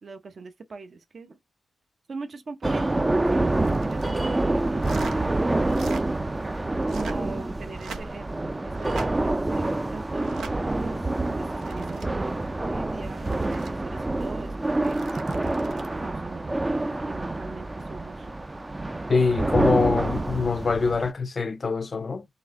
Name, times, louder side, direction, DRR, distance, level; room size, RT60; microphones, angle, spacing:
voice 1, 0.0-1.4 2.1-5.5 6.9-8.3 8.6-11.0 11.3-18.4 19.2-19.3, right 4 dB, 55° right, 0.8 m, -42 dB
sound 1, 2.6-21.1, right 2 dB, 25° right, 0.4 m, -27 dB
sound 2, 3.5-4.3 4.8-5.2 5.6-6.0 6.8-7.3 7.7-8.3 8.8-9.1 10.2-10.5 11.3-12.1 13.0-13.7 14.7-15.9 17.8-18.0, right 5 dB, 85° right, 0.6 m, -42 dB
voice 2, 19.1-22.3, left 4 dB, 45° left, 0.5 m, -24 dB
3.9 x 2.7 x 3.6 m
cardioid pair, 60°, 0 cm